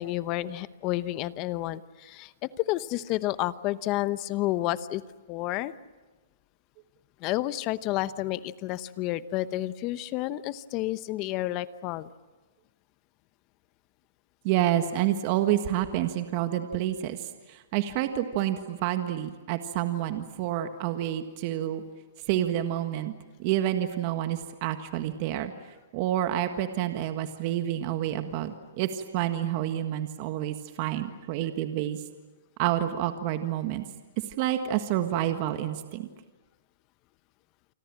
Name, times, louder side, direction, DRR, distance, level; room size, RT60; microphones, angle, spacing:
voice 1, 0.0-5.0 5.3-5.7 7.2-12.1, left 16 dB, 35° left, 15 dB, 0.9 m, -30 dB
voice 2, 14.4-21.8 22.3-23.1 23.4-25.5 25.9-32.0 32.6-33.8 34.4-36.1, right 12 dB, 40° right, 8 dB, 1.6 m, -28 dB
29.0 x 25.0 x 7.5 m, 1.2 s
hypercardioid pair, 140°, 0 cm